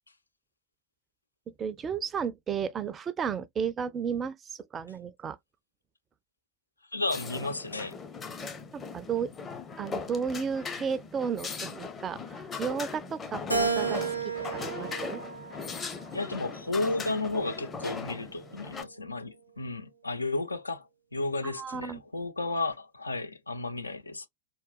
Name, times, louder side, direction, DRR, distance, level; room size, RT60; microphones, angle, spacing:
voice 1, 1.6-5.4 8.7-9.3 9.8-15.2 21.4-22.0, right 7 dB, 25° right, 0.4 m, -33 dB
voice 2, 6.9-8.0 15.8-24.3, left 2 dB, 80° left, 0.5 m, -33 dB
sound 1, 7.1-18.8, left 5 dB, 20° left, 0.6 m, -39 dB
Keyboard (musical), 13.5-16.0 16.6-17.8, right 4 dB, 85° right, 0.7 m, -33 dB
3.9 x 2.2 x 2.2 m
figure-of-eight pair, 90°, 0 cm